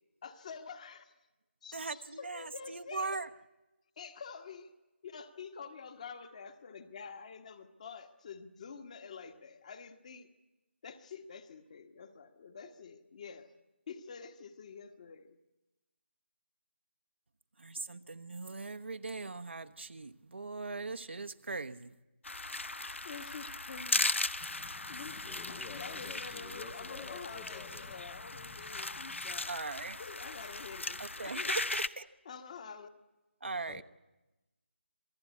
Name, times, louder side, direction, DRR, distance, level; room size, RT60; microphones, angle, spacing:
voice 1, 0.2-1.1 1.6-3.2 4.0-4.6 5.0-10.3 10.8-13.5 13.9-15.4 23.0-24.1 24.9-29.6 30.0-31.8 32.2-32.9, left 5 dB, 35° left, 8 dB, 1.5 m, -47 dB
voice 2, 1.7-3.3 17.6-21.9 29.5-30.0 31.0-32.1 33.4-33.8, right 3 dB, 65° right, 7 dB, 1.1 m, -40 dB
sound 1, 22.2-31.9, left 2 dB, 75° left, 0.8 m, -37 dB
voice 3, 24.4-29.5 33.7-33.8, left 6 dB, 15° left, 11 dB, 0.8 m, -51 dB
27.0 x 19.0 x 8.4 m, 1.1 s
figure-of-eight pair, 160°, 7 cm